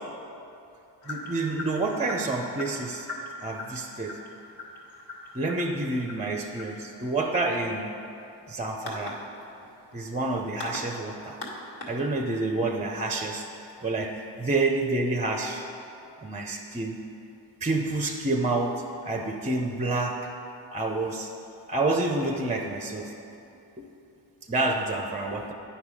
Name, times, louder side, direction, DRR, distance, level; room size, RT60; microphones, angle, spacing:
sound 1, 1.0-12.5, left 2 dB, 55° left, 1.8 m, -42 dB
voice 1, 1.1-3.1 3.4-4.2 5.3-7.8 8.5-9.2 9.9-11.4 11.9-13.5 13.8-15.7 16.2-17.0 17.6-20.3 20.7-21.3 21.7-23.1 23.8-23.9 24.5-25.5, right 2 dB, 15° right, 3 dB, 0.6 m, -28 dB
8.7 x 5.8 x 4.9 m, 2.8 s
cardioid pair, 60°, 46 cm